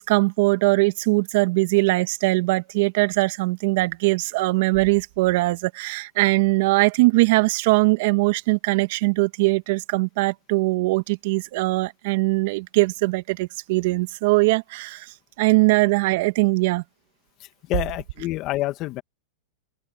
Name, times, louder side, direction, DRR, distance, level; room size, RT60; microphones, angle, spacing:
voice 1, 0.0-15.1 15.4-16.8, right 24 dB, 60° right, 1.8 m, -21 dB
voice 2, 17.4-19.0, left 17 dB, 40° left, 2.0 m, -28 dB
hypercardioid pair, 125°, 0 cm